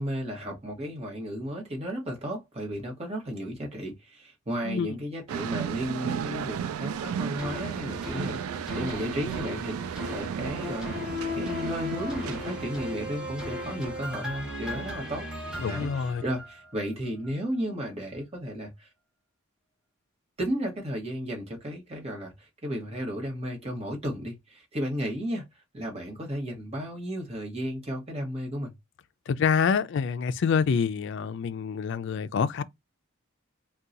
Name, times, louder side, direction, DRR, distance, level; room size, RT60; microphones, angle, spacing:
voice 1, 0.0-15.3 15.7-18.9 20.4-25.4 25.7-28.7, equal, 30° right, 1.1 m, -34 dB
sound 1, 5.3-13.6, right 8 dB, 85° right, 0.3 m, -34 dB
sound 2, 7.4-16.8 17.2-17.3, left 3 dB, 5° right, 0.8 m, -36 dB
voice 2, 15.6-16.2 29.3-32.6, left 6 dB, 60° left, 0.3 m, -26 dB
2.7 x 2.3 x 3.7 m
head